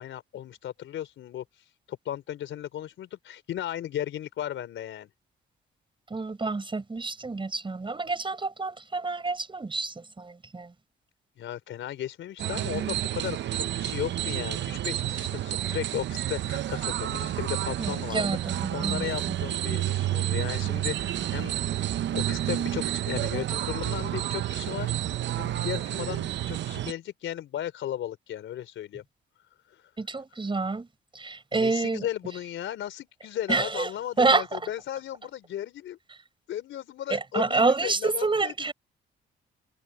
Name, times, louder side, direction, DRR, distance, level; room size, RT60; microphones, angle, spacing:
voice 1, 0.0-1.4 1.9-5.1 11.4-21.9 22.1-24.9 25.3-29.0 31.5-36.0 36.5-38.7, left 11 dB, 75° left, 4.4 m, -35 dB
voice 2, 6.1-10.7 17.8-19.4 30.0-30.9 31.1-32.1 33.5-33.9 34.2-34.7 37.1-38.7, right 3 dB, 25° right, 6.6 m, -28 dB
sound 1, 12.4-26.9, right 13 dB, 65° right, 0.7 m, -30 dB
cardioid pair, 90°, 20 cm